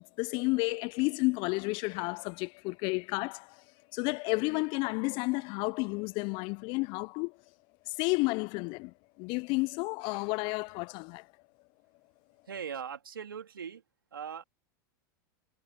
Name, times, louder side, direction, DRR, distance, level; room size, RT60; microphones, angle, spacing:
voice 1, 0.0-3.6 3.9-7.4 7.9-11.3, left 27 dB, 45° left, 0.4 m, -31 dB
voice 2, 12.5-13.8 14.1-14.4, right 7 dB, 90° right, 3.3 m, -40 dB
hypercardioid pair, 100°, 11 cm